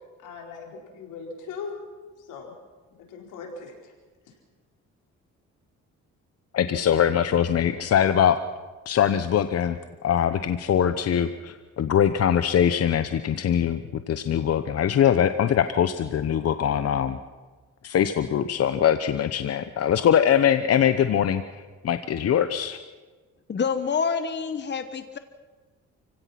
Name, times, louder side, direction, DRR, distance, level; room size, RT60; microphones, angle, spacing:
voice 1, 0.2-1.8 2.3-2.5 3.1-3.7, left 5 dB, 85° left, 1 dB, 4.6 m, -38 dB
voice 2, 6.5-8.4 8.9-9.8 10.0-17.2 17.8-22.8, left 9 dB, 55° left, 10 dB, 0.9 m, -22 dB
voice 3, 23.5-25.2, left 6 dB, 35° left, 10 dB, 1.2 m, -27 dB
29.0 x 17.0 x 5.9 m, 1.3 s
cardioid pair, 90°, 30 cm